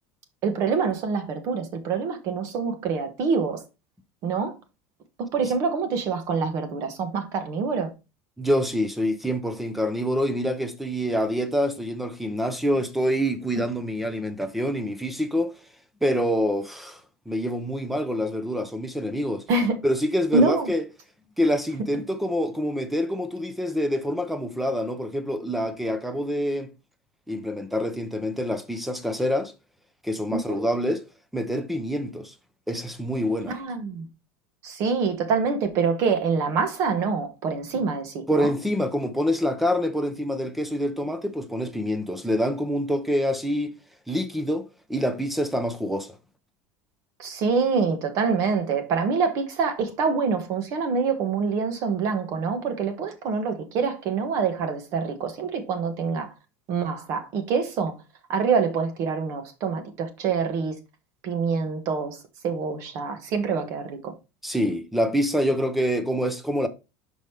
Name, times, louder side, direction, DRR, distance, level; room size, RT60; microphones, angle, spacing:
voice 1, 0.4-3.6 4.2-4.5 5.2-7.9 19.5-19.8 20.3-20.7 30.3-30.6 33.5-34.1 34.6-38.5 47.2-56.3 56.7-58.0 58.3-60.8 61.2-62.2 62.4-64.1, right 5 dB, 45° right, 1.4 m, -25 dB
voice 2, 8.4-15.5 16.0-17.0 17.3-19.4 19.8-20.8 21.4-26.7 27.3-29.5 30.0-31.0 31.3-32.3 32.7-33.5 38.3-43.7 44.1-46.2 64.4-66.7, equal, ahead, 0.7 m, -26 dB
6.0 x 5.3 x 3.3 m
cardioid pair, 160°, 7 cm